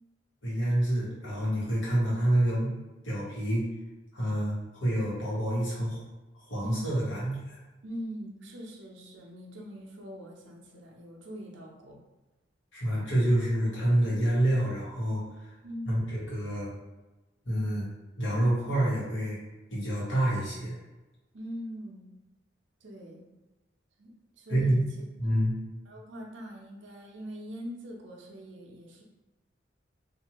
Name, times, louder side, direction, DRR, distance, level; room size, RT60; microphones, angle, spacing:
voice 1, 0.4-2.7 3.0-3.6 4.1-6.0 6.5-7.6 12.7-15.5 15.9-16.7 17.4-17.9 18.2-19.4 19.7-20.7 24.5-24.8 25.2-25.5, right 1 dB, 90° left, -7 dB, 1.4 m, -27 dB
voice 2, 6.6-6.9 7.8-12.0 15.6-16.0 21.3-22.1 22.8-23.3 24.0-25.1 25.9-29.0, equal, 70° right, 0 dB, 0.6 m, -42 dB
2.7 x 2.5 x 2.9 m, 1.1 s
head